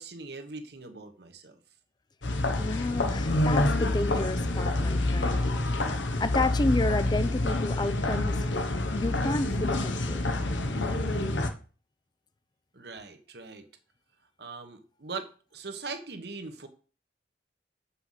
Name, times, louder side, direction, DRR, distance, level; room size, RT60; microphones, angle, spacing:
voice 1, 0.0-1.6 12.7-13.7 14.4-16.7, right 4 dB, 60° right, 1.2 m, -41 dB
sound 1, 2.2-11.5, left 2 dB, 90° left, 1.2 m, -27 dB
voice 2, 2.6-5.5 6.2-8.5 8.9-10.3, left 2 dB, 25° left, 0.5 m, -31 dB
7.6 x 5.7 x 5.7 m
head